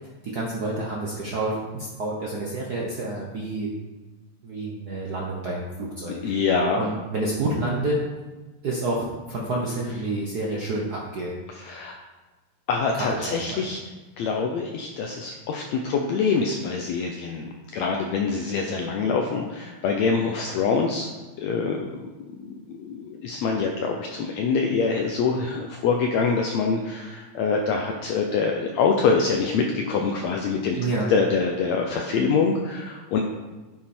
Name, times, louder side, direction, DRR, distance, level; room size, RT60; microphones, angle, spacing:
voice 1, 0.2-3.7 4.4-6.3 6.8-8.0 8.6-11.3 12.9-13.7 30.8-31.1, right 2 dB, 85° right, -3 dB, 0.8 m, -29 dB
voice 2, 6.2-6.9 11.6-12.0 12.7-13.8 14.2-21.1 21.4-22.0 22.4-30.8 31.1-33.2, left 5 dB, 70° left, 2 dB, 1.8 m, -25 dB
9.7 x 8.5 x 4.4 m, 1.2 s
omnidirectional pair, 3.5 m